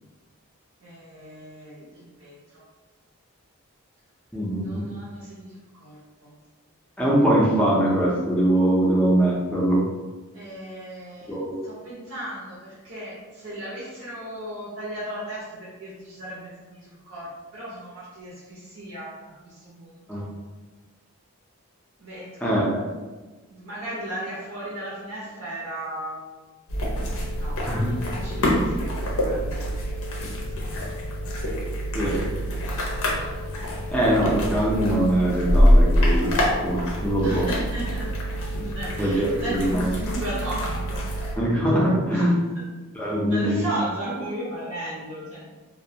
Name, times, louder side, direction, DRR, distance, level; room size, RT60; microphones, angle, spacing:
voice 1, 0.8-2.6 4.6-6.0 6.2-6.3 10.3-11.4 11.6-20.3 22.0-22.5 23.5-26.2 27.4-30.7 37.2-38.1 38.5-41.3 42.1-42.5 43.3-45.5, right 1 dB, 65° right, -8 dB, 0.6 m, -36 dB
voice 2, 4.3-4.9 7.0-9.8 11.3-11.6 20.1-20.2 22.4-22.8 27.7-27.9 31.9-32.2 33.9-36.3 36.6-37.5 39.0-39.9 41.3-42.3 42.9-43.6, right 1 dB, 5° left, -5 dB, 0.4 m, -22 dB
sound 1, 26.7-41.3, equal, 75° left, 0.6 m, -25 dB
2.2 x 2.1 x 2.6 m, 1.3 s
head